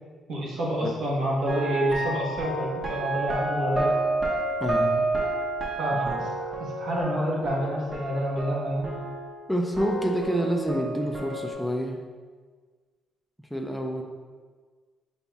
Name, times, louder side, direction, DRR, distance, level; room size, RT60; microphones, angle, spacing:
voice 1, 0.3-3.9 5.8-8.9, equal, 70° right, -4 dB, 1.2 m, -28 dB
sound 1, 1.5-9.5 9.7-11.5, right 2 dB, 25° right, 0.8 m, -30 dB
voice 2, 4.6-5.2 5.9-6.2 9.5-12.1 13.5-14.0, equal, ahead, 1 dB, 0.3 m, -28 dB
5.4 x 4.0 x 2.3 m, 1.5 s
cardioid pair, 145°, 0 cm